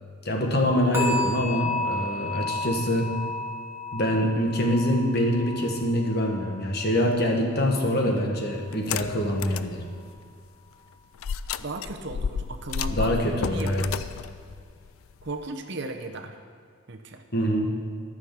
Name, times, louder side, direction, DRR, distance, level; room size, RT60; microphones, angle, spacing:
voice 1, 0.2-3.1 3.9-9.8 12.9-13.8 17.3-17.7, equal, 45° left, 1 dB, 1.5 m, -25 dB
sound 1, 0.9-8.0 8.3-8.7 9.2-9.3, left 2 dB, 10° right, 1.3 m, -33 dB
voice 2, 7.9-8.4 11.6-13.1 13.5-13.9 15.2-16.4 16.9-17.2, right 2 dB, 50° right, 5 dB, 0.9 m, -36 dB
sound 2, 8.7-9.7 10.2-10.3 11.2-15.5, left 6 dB, 70° left, 0.4 m, -32 dB
13.5 x 6.5 x 7.3 m, 2.2 s
head